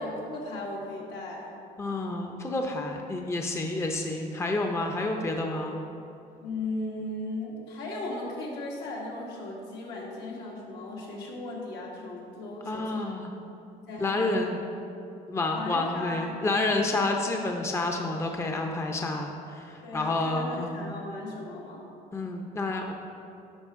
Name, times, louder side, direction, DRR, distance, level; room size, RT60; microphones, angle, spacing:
voice 1, 0.0-1.5 6.4-13.1 13.9-14.5 15.5-16.9 19.8-21.9, left 2 dB, 80° left, -3 dB, 1.8 m, -37 dB
voice 2, 1.8-5.8 12.7-13.3 14.0-14.6 15.3-20.9 22.1-22.9, left 2 dB, 15° left, 2 dB, 0.6 m, -29 dB
10.5 x 5.1 x 3.6 m, 2.7 s
cardioid pair, 110°, 17 cm